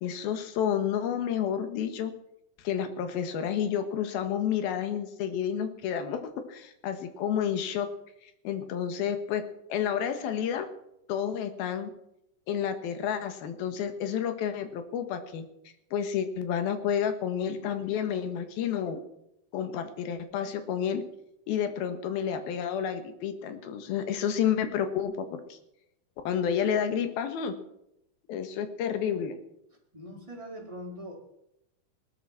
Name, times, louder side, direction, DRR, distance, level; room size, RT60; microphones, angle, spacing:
voice 1, 0.0-2.1 2.6-6.2 6.5-7.9 8.2-9.4 9.7-10.7 11.1-11.9 12.5-15.5 15.9-19.0 19.5-21.0 21.5-25.6 26.2-27.5 28.3-29.4, left 8 dB, 85° left, 8 dB, 3.3 m, -30 dB
voice 2, 29.9-31.3, equal, 10° right, -2 dB, 4.1 m, -42 dB
19.0 x 12.5 x 6.0 m, 0.80 s
omnidirectional pair, 4.3 m